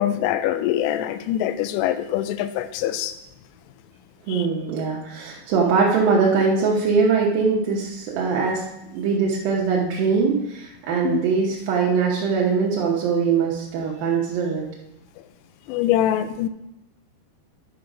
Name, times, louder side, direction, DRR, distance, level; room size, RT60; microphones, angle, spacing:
voice 1, 0.0-3.1 4.3-4.5 11.0-11.2 15.7-16.5, left 12 dB, 85° left, 11 dB, 2.6 m, -24 dB
voice 2, 4.3-8.6 8.9-14.7, right 5 dB, 70° right, -4 dB, 2.2 m, -22 dB
10.0 x 5.7 x 4.9 m, 0.87 s
omnidirectional pair, 5.4 m